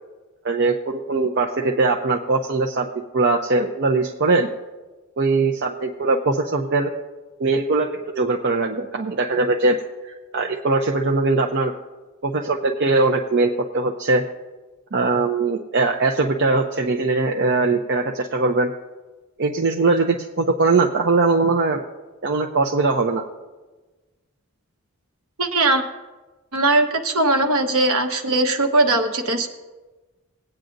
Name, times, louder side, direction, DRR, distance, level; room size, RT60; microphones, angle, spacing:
voice 1, 0.4-4.5 5.2-6.9 7.4-7.9 8.2-9.8 10.0-11.7 12.2-14.2 14.9-18.7 19.4-21.8 22.2-23.3, right 3 dB, 50° right, 1 dB, 0.6 m, -21 dB
voice 2, 25.4-25.8 26.5-29.5, right 2 dB, 70° right, 5 dB, 1.1 m, -19 dB
20.0 x 9.0 x 2.6 m, 1.2 s
head